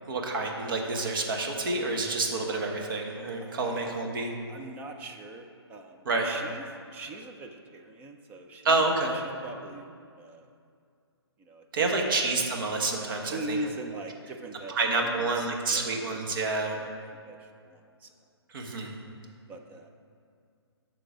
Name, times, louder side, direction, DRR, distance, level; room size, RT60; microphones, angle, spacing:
voice 1, 0.1-4.3 6.0-6.3 8.6-9.1 11.7-13.6 14.7-16.8 18.5-18.9, right 3 dB, 50° right, 1 dB, 1.3 m, -28 dB
voice 2, 3.4-3.7 4.5-8.8 9.4-9.9 10.2-10.5 11.5-11.6 13.2-14.7 15.0-15.5 15.7-16.0 16.7-16.9 17.2-18.1 19.5-19.9, right 2 dB, 10° right, 3 dB, 0.3 m, -41 dB
11.0 x 3.9 x 6.1 m, 2.3 s
figure-of-eight pair, 140°, 14 cm